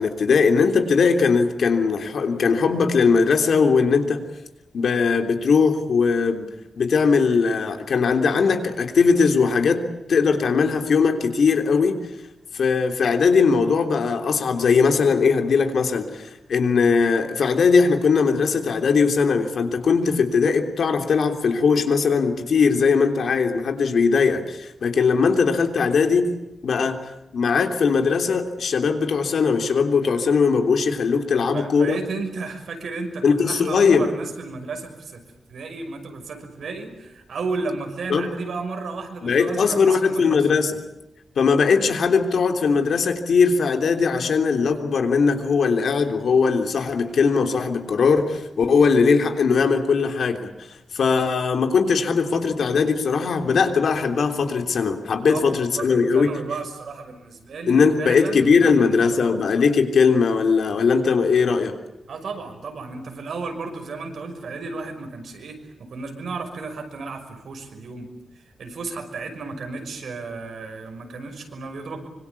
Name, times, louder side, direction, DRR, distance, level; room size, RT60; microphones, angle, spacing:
voice 1, 0.0-4.2 4.7-6.5 6.8-9.8 10.1-12.0 12.5-26.3 26.6-27.0 27.3-32.0 33.2-34.1 38.1-38.3 39.2-40.8 41.3-50.5 50.9-56.3 57.7-61.8, left 5 dB, 75° left, 6 dB, 3.3 m, -19 dB
voice 2, 31.3-35.2 35.5-40.5 55.3-58.9 59.2-59.3 62.1-68.1 68.6-72.1, right 4 dB, 80° right, 5 dB, 6.0 m, -33 dB
25.5 x 25.5 x 8.5 m, 0.90 s
wide cardioid pair, 155°, 0 cm